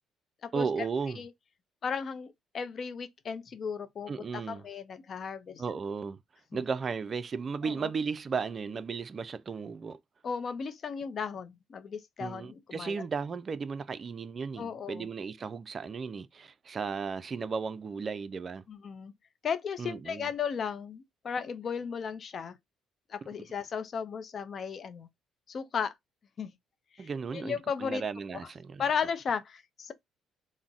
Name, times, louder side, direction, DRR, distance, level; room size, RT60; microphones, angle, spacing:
voice 1, 0.5-1.2 4.1-4.6 5.6-6.2 6.5-10.0 12.2-18.6 19.8-20.3 27.0-28.8, right 5 dB, 40° right, 0.3 m, -35 dB
voice 2, 1.8-5.8 7.6-7.9 10.2-13.0 14.6-15.1 18.7-19.1 19.4-22.6 23.1-25.1 25.5-25.9 26.4-26.5 26.9-28.0 28.8-29.9, left 6 dB, 50° left, 0.5 m, -35 dB
3.7 x 2.1 x 2.3 m
supercardioid pair, 60°, 0 cm